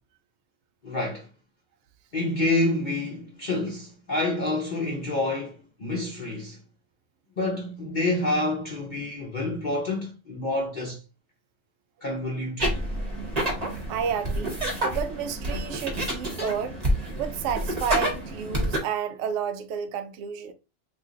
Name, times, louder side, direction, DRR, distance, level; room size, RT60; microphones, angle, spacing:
voice 1, 0.8-1.3 2.1-6.6 7.4-11.0 12.0-12.8, left 2 dB, 45° left, 0.8 m, -28 dB
sound 1, 12.6-18.8, right 1 dB, 35° right, 1.0 m, -28 dB
voice 2, 13.9-20.5, right 7 dB, 75° right, 0.9 m, -31 dB
3.0 x 2.4 x 3.7 m
omnidirectional pair, 1.3 m